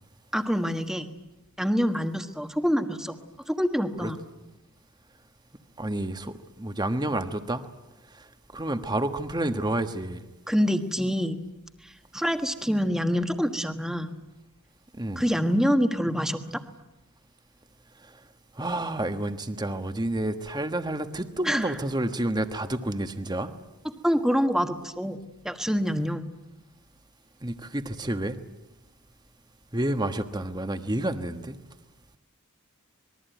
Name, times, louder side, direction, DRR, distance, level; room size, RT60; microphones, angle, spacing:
voice 1, 0.3-1.1 1.6-3.2 3.5-4.2 10.5-11.4 12.1-14.1 15.2-16.6 21.5-21.7 24.0-25.2 25.4-26.2, equal, ahead, 7 dB, 1.4 m, -26 dB
voice 2, 5.8-7.6 8.1-8.2 8.5-10.2 15.0-15.2 18.6-23.5 27.4-28.4 29.7-31.6, right 1 dB, 20° right, 9 dB, 1.3 m, -29 dB
26.0 x 21.5 x 9.3 m, 1.0 s
head